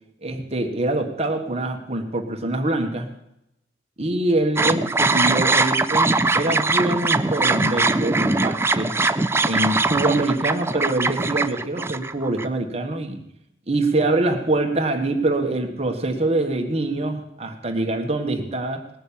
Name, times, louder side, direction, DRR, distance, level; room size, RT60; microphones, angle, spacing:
voice 1, 0.2-3.1 4.0-9.0 9.4-13.2 13.7-18.8, right 2 dB, 35° right, 4 dB, 1.5 m, -24 dB
sound 1, 4.6-12.5, right 3 dB, 15° right, 0.4 m, -21 dB
19.0 x 6.6 x 8.6 m, 0.83 s
head